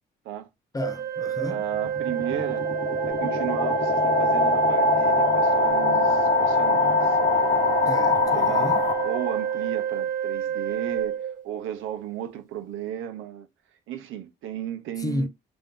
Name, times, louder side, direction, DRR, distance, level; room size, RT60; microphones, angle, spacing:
voice 1, 0.7-1.6 7.9-8.8 15.0-15.3, left 2 dB, 20° left, 0.4 m, -32 dB
Organ, 0.8-11.8, right 9 dB, 40° right, 1.3 m, -29 dB
voice 2, 1.5-2.7 3.1-7.2 8.3-13.5 13.9-15.3, right 10 dB, 85° right, 0.8 m, -35 dB
sound 1, 1.7-9.5, left 3 dB, 35° left, 0.9 m, -23 dB
3.4 x 2.6 x 3.6 m
cardioid pair, 90°, 20 cm